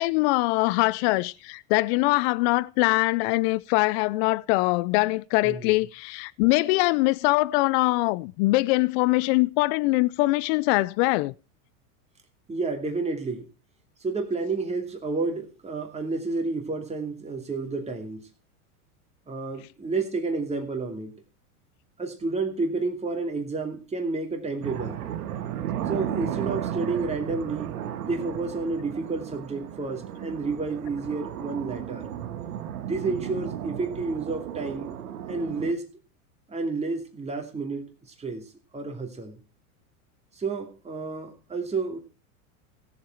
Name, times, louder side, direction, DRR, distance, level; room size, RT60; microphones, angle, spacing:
voice 1, 0.0-11.3, left 22 dB, 50° left, 0.5 m, -23 dB
voice 2, 12.5-13.5 14.0-18.3 19.3-21.1 22.0-25.1 25.9-27.7 28.0-32.1 32.8-34.9 35.3-35.9 36.5-37.9 38.2-38.5 38.7-39.4 40.4-42.0, right 3 dB, 15° right, 2.7 m, -30 dB
sound 1, 24.6-35.7, right 10 dB, 85° right, 1.5 m, -34 dB
16.5 x 7.3 x 4.5 m
supercardioid pair, 125°, 44 cm